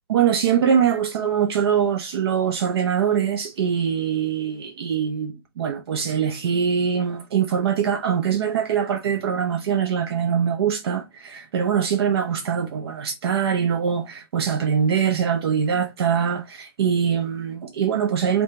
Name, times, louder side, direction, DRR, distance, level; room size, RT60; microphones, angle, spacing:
voice 1, 0.1-18.4, right 8 dB, 80° right, 0.5 m, -23 dB
2.6 x 2.2 x 3.1 m
hypercardioid pair, 160°, 13 cm